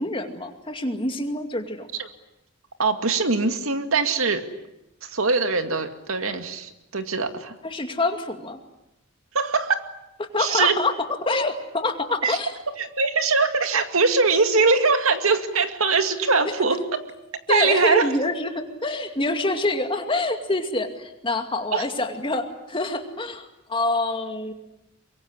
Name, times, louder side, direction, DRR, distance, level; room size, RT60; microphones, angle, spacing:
voice 1, 0.0-1.9 7.6-8.6 10.2-10.9 11.3-12.5 16.6-16.7 17.5-24.5, left 2 dB, 25° left, 6 dB, 2.4 m, -26 dB
voice 2, 2.8-4.5 5.0-7.5 9.3-9.8 10.4-10.8 12.2-12.4 12.8-16.8 17.5-18.1 21.7-21.8, right 4 dB, 80° right, 8 dB, 2.3 m, -22 dB
24.0 x 23.5 x 10.0 m, 0.89 s
head